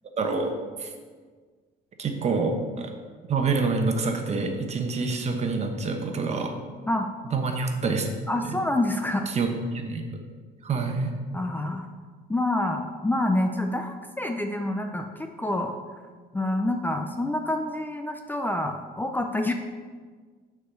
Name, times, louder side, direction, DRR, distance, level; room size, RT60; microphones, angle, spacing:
voice 1, 0.2-0.5 0.8-0.9 2.0-2.9 3.3-6.5 7.3-8.1 8.4-8.6 9.3-10.0 10.6-11.1, right 4 dB, 40° right, 4 dB, 1.1 m, -27 dB
voice 2, 8.3-9.3 11.3-11.9 12.3-15.8 16.3-19.5, left 1 dB, 10° left, 5 dB, 0.5 m, -27 dB
6.4 x 4.9 x 6.8 m, 1.5 s
cardioid pair, 110°, 17 cm